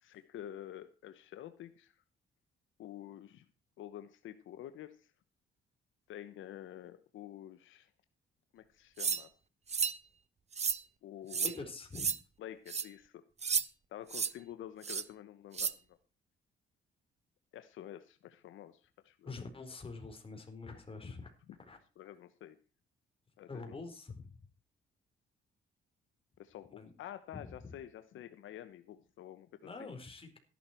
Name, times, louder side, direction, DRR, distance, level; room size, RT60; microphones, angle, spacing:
voice 1, 0.0-2.0 2.8-3.5 3.8-5.1 6.1-7.9 8.5-9.3 11.0-11.7 12.4-13.2 13.9-16.0 17.5-19.3 22.0-22.6 23.4-23.8 26.4-29.5 29.8-29.9, left 11 dB, 80° left, 10 dB, 1.1 m, -49 dB
sound 1, 9.0-9.2 9.7-10.0 10.5-10.8 11.3-11.5 12.0-12.2 12.7-12.9 13.4-13.7 14.1-14.3 14.8-15.0 15.5-15.7, right 6 dB, 35° right, 0.9 m, -32 dB
voice 2, 11.3-12.1 19.2-21.8 23.5-24.5 26.8-26.9 27.3-27.8 29.6-30.4, left 3 dB, 25° left, 4 dB, 4.3 m, -46 dB
14.0 x 11.5 x 4.5 m, 0.35 s
cardioid pair, 90°, 20 cm